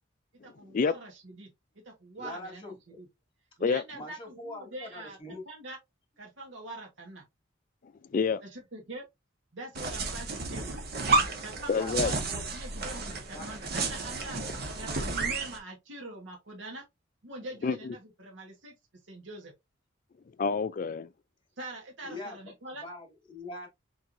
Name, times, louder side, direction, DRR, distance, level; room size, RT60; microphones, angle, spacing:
voice 1, 0.4-1.5 1.8-3.1 3.6-5.2 5.5-5.8 6.2-7.2 8.4-9.0 9.5-10.8 11.4-14.4 14.7-16.8 17.2-18.7 19.0-19.5 21.6-22.8, right 2 dB, 70° right, 1.3 m, -44 dB
voice 2, 2.2-3.0 3.9-5.4 11.7-12.5 13.3-13.5 22.0-22.4 22.8-23.7, left 2 dB, 25° left, 2.1 m, -42 dB
voice 3, 8.1-8.4 11.7-12.1 17.6-17.9 20.4-21.1, left 5 dB, 45° left, 0.3 m, -27 dB
sound 1, 9.7-15.6, right 3 dB, 50° right, 1.4 m, -31 dB
4.6 x 4.5 x 2.5 m
head